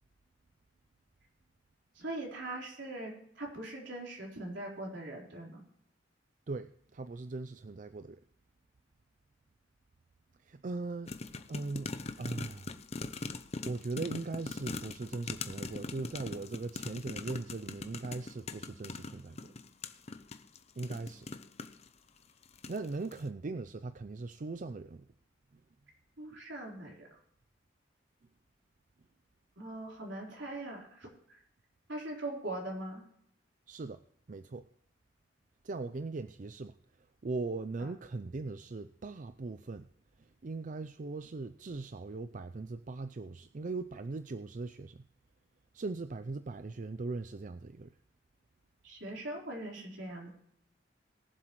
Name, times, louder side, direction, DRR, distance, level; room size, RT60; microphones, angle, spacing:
voice 1, 1.9-5.6 26.2-27.1 29.6-31.4 31.9-33.0 37.8-37.9 48.8-50.3, right 1 dB, 70° right, -1 dB, 4.0 m, -41 dB
voice 2, 6.5-8.2 10.4-11.9 12.2-12.7 13.6-19.5 20.8-21.3 22.7-25.1 33.7-34.0 34.3-34.7 35.6-36.7 37.2-39.9 40.2-45.1 45.7-48.0, right 3 dB, 45° right, 11 dB, 0.5 m, -39 dB
sound 1, 11.1-21.9 22.4-22.9 23.1-23.2, left 3 dB, 35° left, 0.7 m, -41 dB
21.5 x 7.6 x 3.1 m, 0.70 s
head